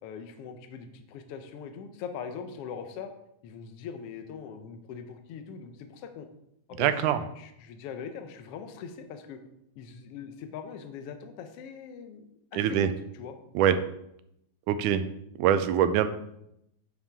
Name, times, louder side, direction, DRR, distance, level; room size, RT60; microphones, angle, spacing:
voice 1, 0.0-3.1 3.4-6.3 6.7-9.4 9.7-12.2 12.5-13.3, left 6 dB, 70° left, 7 dB, 1.4 m, -41 dB
voice 2, 6.8-7.2 12.5-12.9 13.6-13.8 14.7-15.0 15.4-16.1, right 10 dB, 85° right, 11 dB, 2.1 m, -23 dB
9.1 x 7.1 x 3.5 m, 0.79 s
omnidirectional pair, 3.5 m